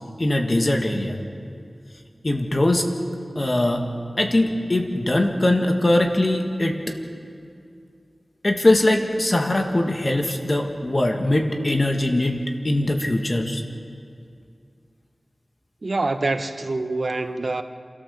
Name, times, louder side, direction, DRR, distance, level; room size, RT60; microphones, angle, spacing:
voice 1, 0.2-1.2 2.2-2.9 3.4-3.9 4.2-7.0 8.4-12.4 12.6-13.6, left 1 dB, 45° left, 3 dB, 2.2 m, -21 dB
voice 2, 15.8-17.6, right 2 dB, 65° right, 8 dB, 1.1 m, -25 dB
27.5 x 13.5 x 7.3 m, 2.4 s
wide cardioid pair, 45°, 0 cm